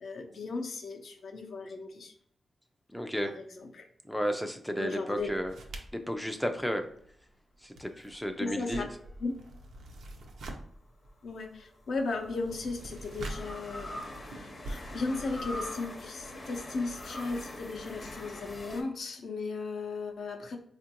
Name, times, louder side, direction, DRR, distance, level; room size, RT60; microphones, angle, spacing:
voice 1, 0.0-2.1 3.2-3.9 4.8-5.3 8.4-9.3 11.2-20.6, left 3 dB, 70° left, 4 dB, 0.6 m, -36 dB
voice 2, 2.9-3.3 4.1-5.6 6.1-6.9 7.6-8.9, equal, 5° left, 5 dB, 0.3 m, -33 dB
sound 1, 5.2-7.3 7.6-15.6, right 1 dB, 80° right, 0.6 m, -45 dB
sound 2, 7.9-9.4 11.3-18.8, left 1 dB, 30° left, 0.7 m, -44 dB
4.3 x 2.5 x 2.8 m, 0.65 s
wide cardioid pair, 125°, 0 cm